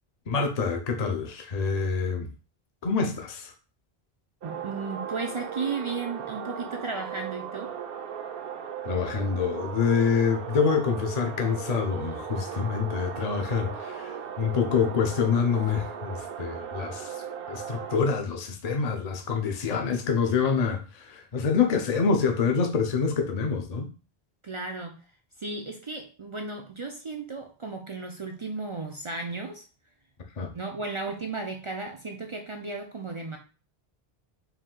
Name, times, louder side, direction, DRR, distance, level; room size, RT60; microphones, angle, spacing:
voice 1, 0.3-2.3 2.8-3.5 8.8-17.1 17.5-23.9 30.4-30.5, left 5 dB, 45° left, 0.7 m, -26 dB
voice 2, 4.4-7.7 24.4-25.0 25.4-29.7 30.5-33.4, right 4 dB, 45° right, 0.4 m, -34 dB
sound 1, 4.4-18.0, right 8 dB, 65° right, 0.8 m, -37 dB
4.7 x 2.6 x 3.7 m
omnidirectional pair, 1.1 m